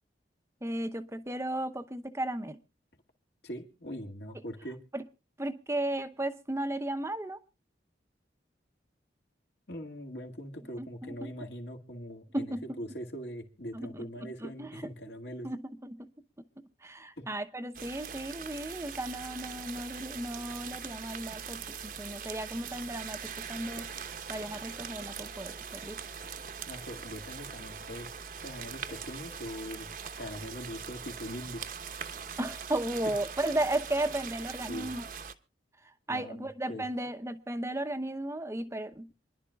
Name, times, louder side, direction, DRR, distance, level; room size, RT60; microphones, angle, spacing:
voice 1, 0.6-2.6 4.9-5.0 5.4-7.4 10.8-11.3 12.3-12.6 13.7-14.1 14.4-14.8 15.4-16.0 16.8-26.0 32.4-35.1 36.1-39.1, right 1 dB, 15° right, 8 dB, 0.8 m, -35 dB
voice 2, 3.4-4.8 9.7-15.5 17.2-17.3 26.7-28.1 28.4-31.6 33.1-33.2 34.7-34.9 36.1-36.9, equal, 65° left, 3 dB, 2.2 m, -42 dB
sound 1, 17.7-35.3, right 7 dB, 50° right, 1.0 m, -42 dB
27.5 x 11.0 x 2.3 m, 0.30 s
head